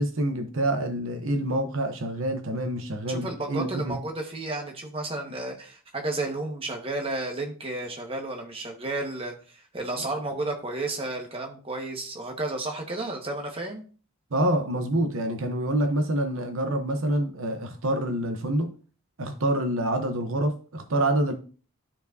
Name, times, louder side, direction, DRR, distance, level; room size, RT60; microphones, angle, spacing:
voice 1, 0.0-4.0 14.3-18.7 19.2-21.3, right 1 dB, 70° right, 0.8 m, -27 dB
voice 2, 3.1-13.8, right 2 dB, 25° right, 1.4 m, -32 dB
13.0 x 4.7 x 2.7 m
head